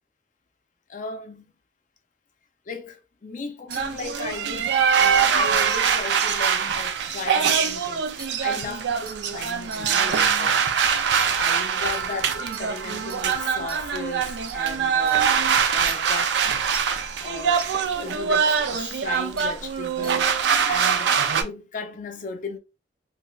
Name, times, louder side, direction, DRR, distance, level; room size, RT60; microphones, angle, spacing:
voice 1, 0.9-1.5 2.7-10.7 11.3-15.3 15.7-16.5 17.2-17.6 18.0-22.6, left 4 dB, 45° left, 0.4 m, -36 dB
sound 1, 3.7-3.8 4.5-4.6 5.0-5.1 5.6-5.7 6.4-6.5 8.2-8.3 9.1-9.2 9.7-9.8 10.3-10.4 11.2-11.3 11.9-12.0 12.5-12.6 13.1-13.2 13.7-13.8 14.5-14.6 15.1-15.2 15.9-16.0 16.7-16.9 17.6-17.7 18.6-18.7 19.4-19.5 20.0-20.2 20.7-20.9, right 5 dB, 50° right, 0.9 m, -39 dB
sound 2, 3.7-21.4, right 7 dB, 70° right, 0.4 m, -23 dB
3.1 x 2.6 x 2.3 m
head